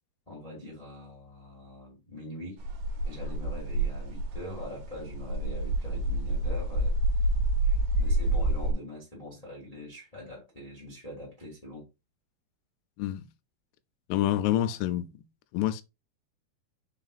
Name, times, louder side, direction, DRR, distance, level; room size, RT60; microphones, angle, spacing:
voice 1, 0.3-2.6 3.0-7.3 7.9-11.8, left 1 dB, 20° left, 0.9 m, -43 dB
sound 1, 2.6-8.7, right 1 dB, 75° right, 2.4 m, -28 dB
voice 2, 14.1-15.1 15.5-15.8, left 13 dB, 85° left, 2.5 m, -27 dB
5.3 x 3.9 x 2.4 m
omnidirectional pair, 4.7 m